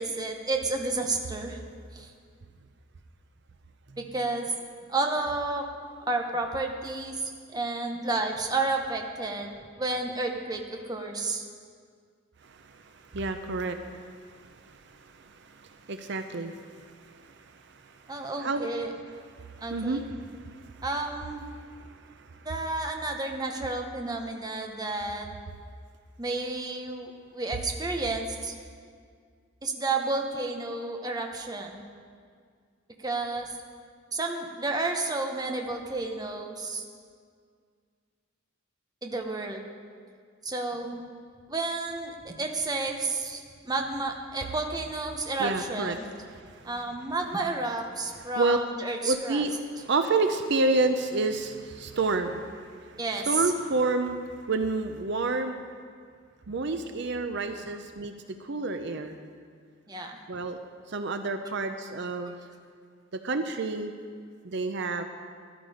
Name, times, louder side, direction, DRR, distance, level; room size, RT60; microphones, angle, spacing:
voice 1, 0.0-1.6 1.9-2.1 4.0-4.5 4.9-5.6 6.1-11.4 18.1-18.9 19.6-20.0 20.8-21.4 22.4-25.3 26.2-28.5 29.6-31.8 33.0-33.5 34.1-36.8 39.0-39.6 40.4-41.0 41.5-46.0 46.6-49.4 53.0-53.4 59.9-60.2, right 3 dB, 20° right, 3 dB, 1.0 m, -31 dB
voice 2, 13.1-14.1 14.7-14.8 15.3-15.5 15.9-16.6 17.2-17.3 18.4-18.7 19.4-20.0 20.4-20.7 45.4-46.0 46.3-46.4 48.4-48.6 49.0-52.5 52.8-52.9 53.2-54.2 54.5-55.6 56.5-58.1 58.4-59.1 60.3-60.6 60.9-62.3 63.2-63.9 64.4-65.0, right 3 dB, 60° right, 7 dB, 0.6 m, -28 dB
13.0 x 12.0 x 5.0 m, 2.1 s
head